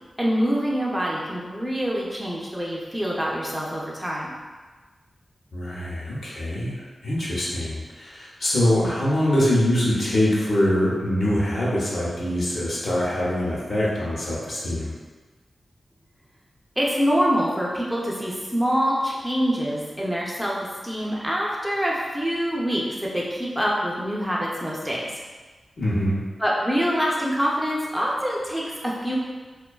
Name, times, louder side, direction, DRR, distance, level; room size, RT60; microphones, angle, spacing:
voice 1, 0.2-4.3 16.8-20.5 20.8-25.0 26.4-29.2, equal, 5° right, -5 dB, 0.4 m, -25 dB
voice 2, 5.5-14.9 25.8-26.2, left 1 dB, 65° left, -6 dB, 0.7 m, -24 dB
2.4 x 2.2 x 2.2 m, 1.3 s
wide cardioid pair, 75°, 0 cm